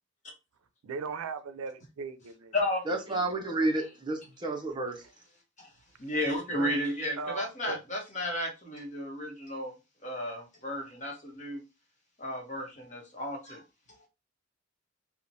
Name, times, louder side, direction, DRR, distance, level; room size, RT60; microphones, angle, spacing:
voice 1, 0.8-2.5 3.2-3.3 6.5-6.8 7.2-7.8, right 5 dB, 90° right, 0.4 m, -38 dB
voice 2, 2.9-5.0, right 2 dB, 20° right, 0.5 m, -30 dB
voice 3, 6.0-9.7 10.0-11.6 12.2-13.6, left 1 dB, 35° left, 0.8 m, -33 dB
2.9 x 2.1 x 2.6 m
head